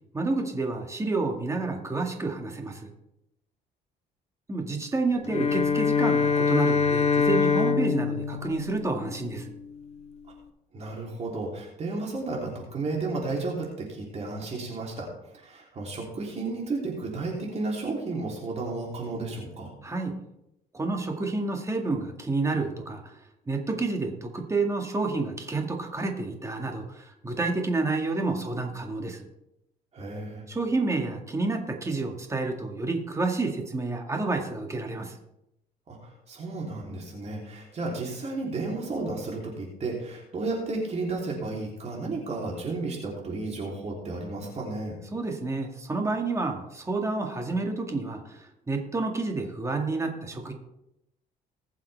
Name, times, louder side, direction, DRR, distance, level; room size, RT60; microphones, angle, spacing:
voice 1, 0.1-2.9 4.5-9.5 19.8-20.1 20.7-23.2 23.5-29.3 30.5-35.2 45.1-50.5, right 3 dB, 15° right, 2 dB, 2.0 m, -29 dB
Bowed string instrument, 5.2-9.6, left 5 dB, 40° left, 1.1 m, -25 dB
voice 2, 10.7-15.1 15.3-19.7 29.9-30.4 35.9-45.0, right 3 dB, 40° right, -2 dB, 3.3 m, -33 dB
20.0 x 7.3 x 3.5 m, 0.84 s
cardioid pair, 110°, 17 cm